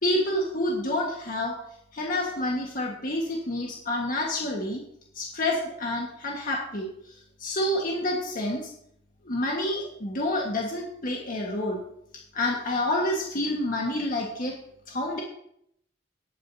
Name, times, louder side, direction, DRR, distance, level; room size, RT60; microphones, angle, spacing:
voice 1, 0.0-1.6 1.9-4.8 5.1-8.7 9.2-11.8 12.3-14.6 14.9-15.2, left 1 dB, 45° left, -1 dB, 1.6 m, -28 dB
18.0 x 8.9 x 2.8 m, 0.72 s
head